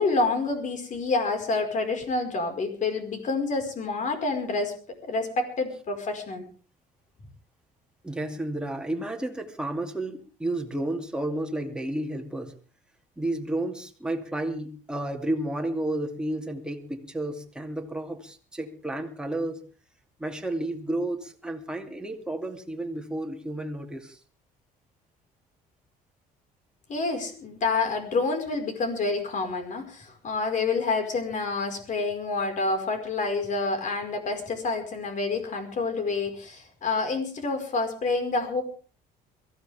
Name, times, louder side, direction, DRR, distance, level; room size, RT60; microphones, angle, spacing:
voice 1, 0.0-4.7 5.0-6.4 26.9-38.6, left 3 dB, 50° left, 5 dB, 5.1 m, -28 dB
voice 2, 8.0-12.5 13.2-19.6 20.2-24.2, right 1 dB, 5° right, 3 dB, 2.5 m, -31 dB
22.5 x 15.5 x 3.6 m, 0.38 s
cardioid pair, 110°, 17 cm